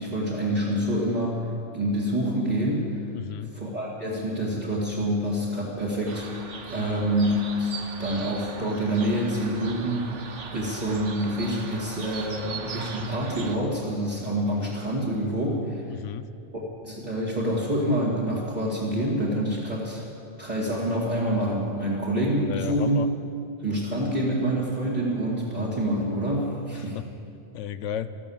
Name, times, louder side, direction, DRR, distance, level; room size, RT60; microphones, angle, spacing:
voice 1, 0.0-1.4 1.7-2.9 3.5-6.3 6.6-10.1 10.5-15.8 16.5-20.0 20.4-23.1 23.6-27.0, right 1 dB, 35° right, -7 dB, 2.1 m, -27 dB
voice 2, 3.1-3.5 6.8-7.1 15.9-16.3 22.4-23.1 26.7-27.0 27.5-28.1, left 9 dB, 85° left, 14 dB, 1.0 m, -33 dB
sound 1, 6.1-13.6, right 4 dB, 75° right, 1.4 m, -39 dB
13.5 x 13.5 x 7.1 m, 2.6 s
omnidirectional pair, 1.3 m